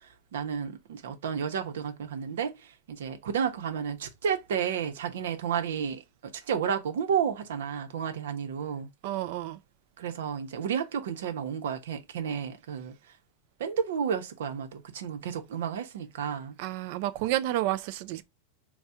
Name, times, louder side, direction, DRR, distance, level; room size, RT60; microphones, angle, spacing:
voice 1, 0.3-2.5 2.9-8.9 10.0-12.9 13.6-16.5, right 7 dB, 90° right, 0.9 m, -31 dB
voice 2, 9.0-9.6 16.6-18.2, right 14 dB, 55° right, 0.4 m, -30 dB
4.2 x 2.3 x 3.5 m
supercardioid pair, 155°, 0 cm